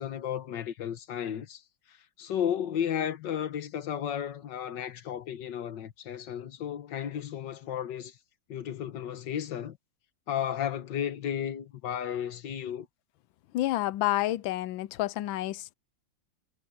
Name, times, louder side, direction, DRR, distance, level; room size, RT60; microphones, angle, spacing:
voice 1, 0.0-1.6 1.9-8.2 8.5-9.8 10.3-12.9, left 9 dB, 65° left, 1.8 m, -33 dB
voice 2, 13.5-15.7, left 15 dB, 90° left, 1.4 m, -29 dB
omnidirectional pair, 2.1 m